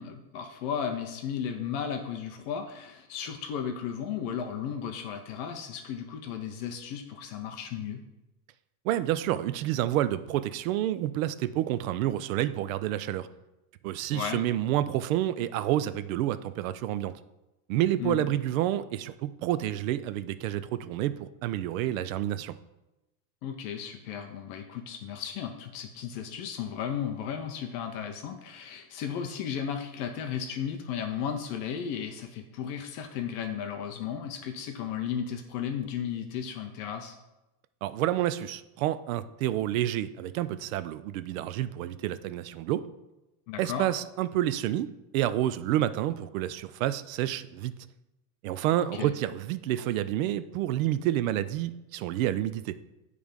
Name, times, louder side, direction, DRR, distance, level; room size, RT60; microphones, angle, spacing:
voice 1, 0.0-8.0 14.1-14.4 18.0-18.3 23.4-37.2 43.5-43.9 48.7-49.1, left 8 dB, 30° left, 5 dB, 0.4 m, -35 dB
voice 2, 8.8-13.3 13.8-17.1 17.7-22.6 37.8-42.9 43.6-47.7 48.4-52.8, right 13 dB, 60° right, 13 dB, 0.5 m, -29 dB
9.2 x 3.3 x 5.1 m, 0.99 s
supercardioid pair, 155°, 46 cm